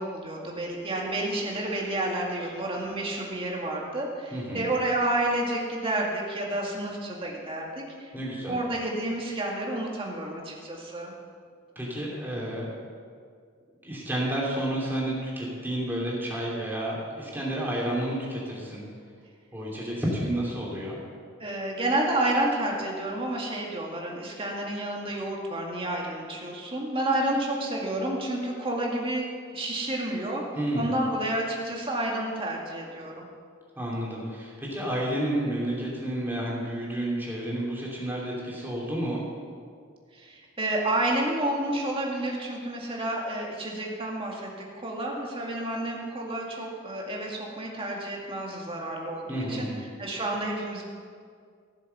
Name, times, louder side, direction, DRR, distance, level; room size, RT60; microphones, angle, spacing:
voice 1, 0.0-8.1 8.5-11.1 21.4-30.4 30.8-33.3 40.1-44.5 44.8-49.7 50.0-50.8, right 1 dB, 25° right, -2 dB, 2.0 m, -30 dB
voice 2, 4.3-4.7 8.1-8.6 11.7-12.9 13.8-18.8 19.5-21.0 30.6-30.9 33.8-39.2 49.3-49.8, right 1 dB, 10° right, -5 dB, 3.0 m, -30 dB
15.0 x 7.4 x 6.8 m, 2.1 s
head